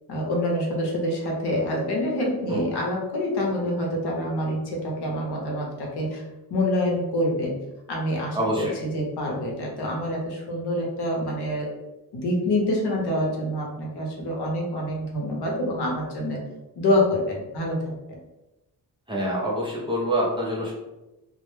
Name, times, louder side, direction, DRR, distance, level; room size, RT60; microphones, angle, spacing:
voice 1, 0.1-7.6 7.9-11.7 12.1-16.4 16.8-18.2, left 1 dB, 80° left, -1 dB, 0.7 m, -26 dB
voice 2, 8.3-8.7 19.1-20.7, equal, 15° right, -6 dB, 0.4 m, -26 dB
2.1 x 2.0 x 3.0 m, 1.0 s
wide cardioid pair, 160°, 39 cm